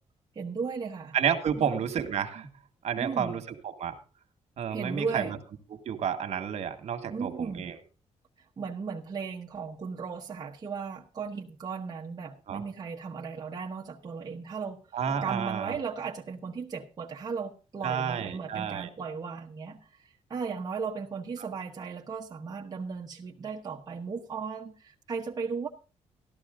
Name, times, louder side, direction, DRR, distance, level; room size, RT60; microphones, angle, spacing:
voice 1, 0.3-1.2 1.6-1.8 3.0-3.3 4.7-5.4 7.1-7.6 8.4-14.8 15.2-25.7, right 5 dB, 30° right, 1.1 m, -36 dB
voice 2, 1.1-2.5 2.8-3.4 3.8-3.9 4.6-5.2 5.9-7.7 12.5-12.6 14.9-15.7 17.8-18.9 21.4-21.5, right 8 dB, 60° right, 1.7 m, -30 dB
13.5 x 12.5 x 3.8 m
wide cardioid pair, 170°, 13 cm